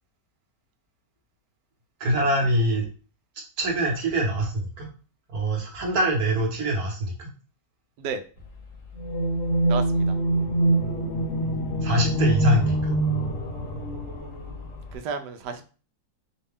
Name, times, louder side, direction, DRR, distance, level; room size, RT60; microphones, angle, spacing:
voice 1, 2.0-2.9 3.6-4.9 5.3-7.3 11.8-12.9, right 1 dB, 55° right, -1 dB, 1.6 m, -24 dB
sound 1, 9.0-15.0, right 1 dB, 55° left, 1.1 m, -25 dB
voice 2, 9.7-10.2 14.9-15.7, right 5 dB, 75° right, 8 dB, 1.2 m, -32 dB
5.2 x 2.2 x 3.5 m, 0.37 s
omnidirectional pair, 1.9 m